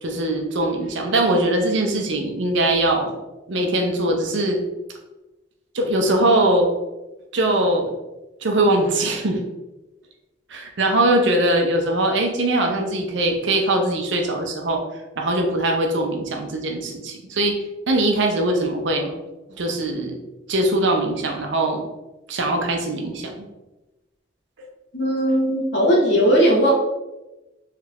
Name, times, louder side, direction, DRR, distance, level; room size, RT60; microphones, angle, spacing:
voice 1, 0.0-3.1 3.5-4.6 5.7-6.7 7.3-7.9 8.4-9.4 10.5-14.8 15.2-17.6 17.9-19.1 19.5-20.2 20.5-21.8 22.3-23.5, right 1 dB, 75° right, 3 dB, 0.6 m, -21 dB
voice 2, 24.9-26.7, equal, 70° left, -3 dB, 1.0 m, -18 dB
3.2 x 2.4 x 3.3 m, 1.0 s
head